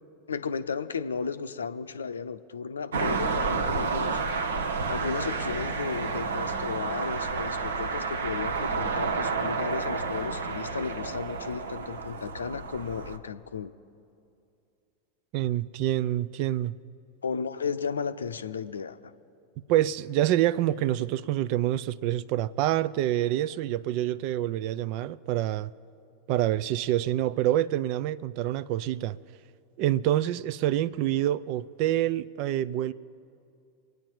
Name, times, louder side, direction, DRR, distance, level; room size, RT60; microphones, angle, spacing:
voice 1, 0.3-4.2 4.9-13.7 17.2-19.1, left 5 dB, 80° left, 0.6 m, -34 dB
sound 1, 2.9-13.2, right 4 dB, 75° right, 0.9 m, -30 dB
voice 2, 15.3-16.8 19.7-25.7 26.3-29.2 29.8-32.9, right 13 dB, 50° right, 0.4 m, -27 dB
24.5 x 9.3 x 4.6 m
figure-of-eight pair, 85°, 0 cm